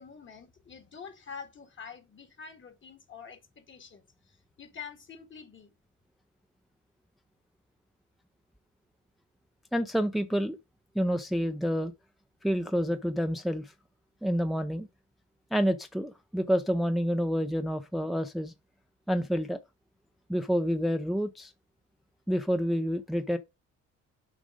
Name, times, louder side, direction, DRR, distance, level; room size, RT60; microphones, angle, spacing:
voice 1, 0.0-5.7, left 6 dB, 40° left, 2.0 m, -47 dB
voice 2, 9.7-10.6 10.9-11.9 12.4-13.7 14.2-14.9 15.5-18.5 19.1-19.6 20.3-21.5 22.3-23.4, equal, ahead, 0.6 m, -28 dB
7.5 x 4.9 x 5.1 m
cardioid pair, 90°, 30 cm